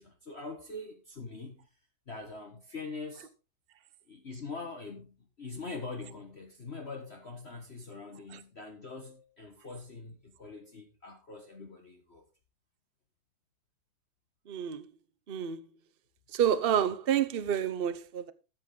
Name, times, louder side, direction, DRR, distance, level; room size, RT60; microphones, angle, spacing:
voice 1, 0.0-1.7 2.1-3.3 4.1-12.2, left 3 dB, 35° left, 1.6 m, -43 dB
voice 2, 14.5-14.9 15.3-15.7 16.3-18.3, right 9 dB, 45° right, 0.8 m, -29 dB
13.5 x 7.8 x 3.9 m
omnidirectional pair, 2.0 m